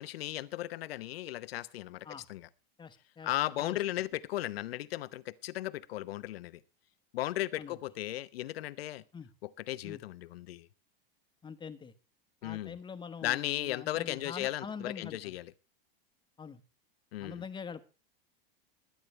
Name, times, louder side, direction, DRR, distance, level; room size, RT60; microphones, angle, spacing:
voice 1, 0.0-2.5 3.2-6.6 7.1-9.0 9.4-10.7 12.4-12.8 13.2-15.5 17.1-17.4, left 15 dB, 80° left, 15 dB, 0.9 m, -36 dB
voice 2, 2.8-3.8 7.6-7.8 9.1-9.3 9.8-10.0 11.4-11.9 12.4-15.4 16.4-16.6 17.2-17.8, left 6 dB, 15° left, 10 dB, 1.1 m, -44 dB
21.5 x 9.5 x 3.3 m, 0.32 s
supercardioid pair, 130°, 30 cm